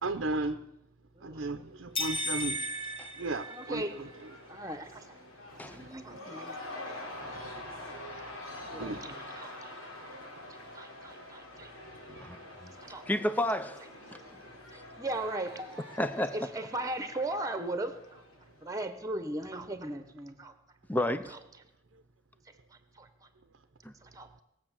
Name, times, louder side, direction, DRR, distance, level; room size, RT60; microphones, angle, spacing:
voice 1, 0.0-0.6 1.2-2.6 3.2-4.3 7.2-7.5 8.7-9.2 12.1-12.3, right 2 dB, 60° right, 7 dB, 0.8 m, -35 dB
Cheering / Crowd, 1.9-18.8, left 1 dB, 80° left, 4.5 m, -46 dB
sound 1, 1.9-4.1, equal, 25° left, 1.2 m, -35 dB
voice 2, 3.5-4.0 4.5-5.1 5.6-6.6 7.7-8.4 8.7-9.7 10.5-11.7 12.8-13.0 14.1-14.2 14.7-15.5 16.3-18.2 18.6-20.5 23.0-23.1 24.0-24.3, right 2 dB, 15° right, 10 dB, 1.2 m, -38 dB
voice 3, 12.2-12.7 13.1-13.8 15.9-16.4 20.9-21.4 23.8-23.9, left 1 dB, 10° left, 11 dB, 0.6 m, -31 dB
19.0 x 7.6 x 7.4 m, 0.88 s
head